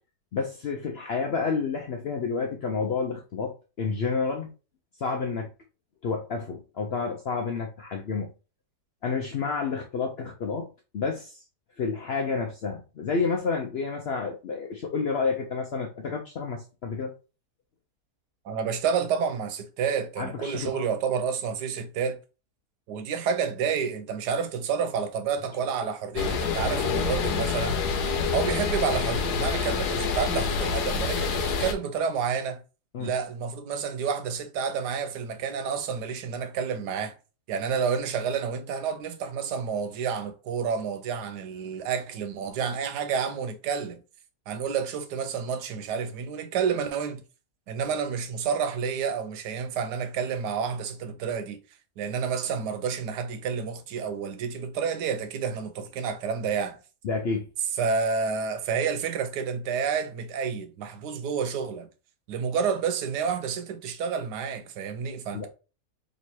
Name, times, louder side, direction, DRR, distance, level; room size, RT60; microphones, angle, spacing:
voice 1, 0.3-4.5 5.0-5.5 6.0-8.3 9.0-10.7 10.9-11.4 11.8-17.2 20.2-20.9 32.9-33.1 57.0-57.5 65.3-65.5, left 4 dB, 65° left, 0.6 m, -30 dB
voice 2, 18.4-22.2 22.9-27.8 28.3-32.6 33.0-37.2 37.5-44.0 44.5-47.2 47.7-51.6 52.0-56.8 57.8-61.9 62.3-65.5, right 6 dB, 90° right, 1.3 m, -29 dB
sound 1, 26.2-31.7, left 5 dB, 85° left, 1.3 m, -27 dB
3.1 x 2.9 x 4.3 m
omnidirectional pair, 1.7 m